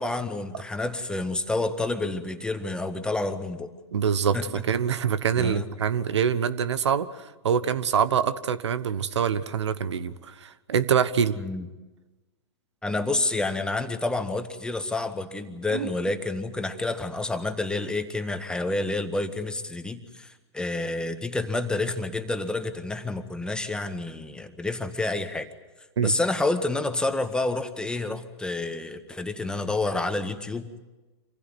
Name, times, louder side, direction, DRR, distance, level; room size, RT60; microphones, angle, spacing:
voice 1, 0.0-3.7 4.3-4.4 5.4-5.7 11.4-11.6 12.8-25.5 26.0-30.8, left 2 dB, 5° left, 7 dB, 1.8 m, -29 dB
voice 2, 3.9-11.4 15.7-15.9 26.0-26.1, right 7 dB, 80° right, 14 dB, 1.3 m, -25 dB
26.5 x 15.5 x 9.4 m, 1.2 s
hypercardioid pair, 115°, 14 cm